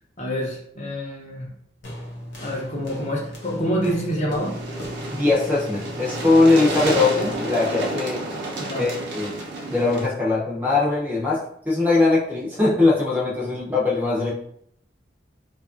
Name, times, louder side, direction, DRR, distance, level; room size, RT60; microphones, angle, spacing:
voice 1, 0.2-1.5 2.4-4.6 8.6-9.0, equal, 40° left, -3 dB, 0.6 m, -27 dB
sound 1, 1.8-7.6, equal, 80° left, 0.8 m, -36 dB
sound 2, 4.4-10.1, right 2 dB, 75° right, 0.6 m, -30 dB
voice 2, 5.2-8.2 8.8-9.4 9.7-11.4 11.7-14.3, left 3 dB, 10° right, -5 dB, 0.5 m, -20 dB
2.7 x 2.4 x 2.4 m, 0.69 s
head